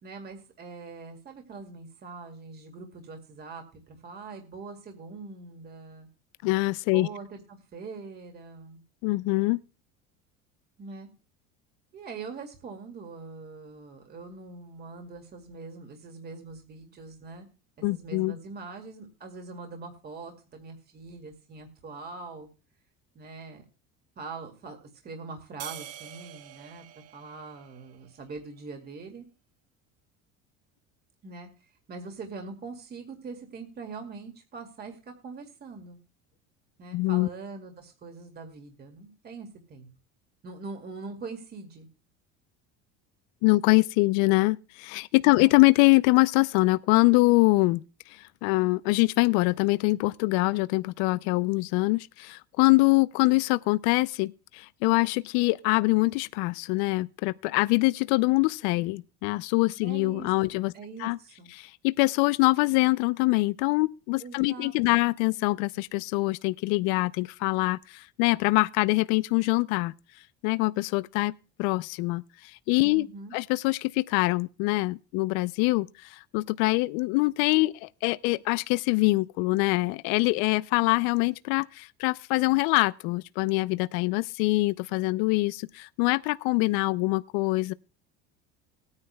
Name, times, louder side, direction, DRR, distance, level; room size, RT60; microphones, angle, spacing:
voice 1, 0.0-6.1 6.9-8.8 10.8-11.1 11.9-17.5 17.8-22.5 23.1-23.6 24.2-29.2 31.2-36.0 36.8-39.9 40.4-41.9 45.2-45.6 59.8-61.5 64.2-65.0 72.9-73.4, right 4 dB, 30° right, 2.3 m, -43 dB
voice 2, 6.4-7.1 9.0-9.6 17.8-18.3 36.9-37.3 43.4-47.8 48.1-60.7 61.0-61.2 61.6-69.9 70.4-71.3 71.6-73.1 73.3-87.7, left 23 dB, 80° left, 0.5 m, -24 dB
sound 1, 25.6-28.2, right 12 dB, 50° right, 0.9 m, -45 dB
19.5 x 9.7 x 2.2 m
cardioid pair, 140°, 31 cm